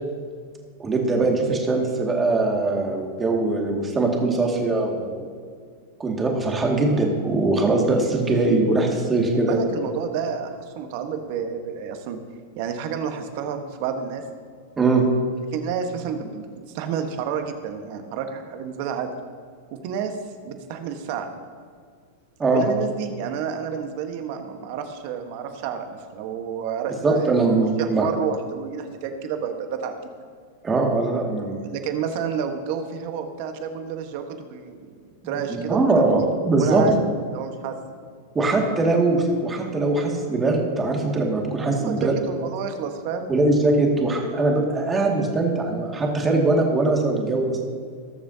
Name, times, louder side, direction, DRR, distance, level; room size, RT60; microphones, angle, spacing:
voice 1, 0.8-5.2 6.0-9.6 14.8-15.0 22.4-22.6 27.0-28.1 30.6-31.6 35.2-36.8 38.3-42.1 43.3-47.6, right 3 dB, 20° right, 0 dB, 2.0 m, -21 dB
voice 2, 9.5-12.2 12.6-14.2 15.5-16.5 16.7-19.1 19.7-20.2 20.4-21.3 22.5-27.3 27.8-30.0 31.7-34.9 35.2-35.9 36.6-36.9 37.3-37.8 41.7-43.3, right 7 dB, 55° right, 6 dB, 1.2 m, -30 dB
19.0 x 6.9 x 2.8 m, 2.1 s
hypercardioid pair, 115°, 0 cm